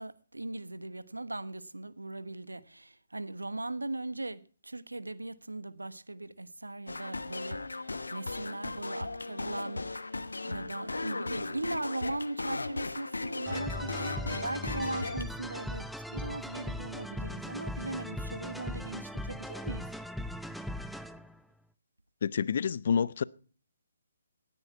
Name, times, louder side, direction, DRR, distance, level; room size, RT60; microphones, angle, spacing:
voice 1, 0.0-9.9 10.4-19.9, right 2 dB, 85° right, 1.1 m, -39 dB
sound 1, 6.9-15.2, left 3 dB, 75° left, 1.2 m, -37 dB
sound 2, 13.5-21.4, left 1 dB, ahead, 0.6 m, -39 dB
voice 2, 22.2-23.2, left 7 dB, 50° left, 0.6 m, -28 dB
18.0 x 9.8 x 4.6 m
figure-of-eight pair, 135°, 0 cm